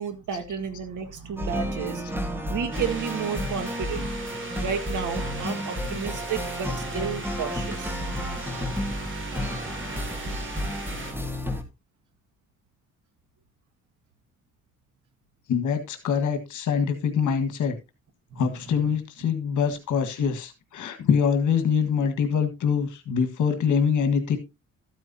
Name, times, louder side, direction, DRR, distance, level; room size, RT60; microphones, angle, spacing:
voice 1, 0.0-4.1 4.6-8.0 18.3-18.9, right 7 dB, 85° right, 7 dB, 1.9 m, -32 dB
sound 1, 1.4-11.6, equal, 5° right, 1.6 m, -31 dB
sound 2, 2.7-11.1, right 3 dB, 40° right, 3.2 m, -39 dB
voice 2, 15.5-17.8 18.4-24.4, left 6 dB, 75° left, 7 dB, 1.7 m, -24 dB
13.5 x 9.3 x 2.8 m, 0.25 s
cardioid pair, 135°, 30 cm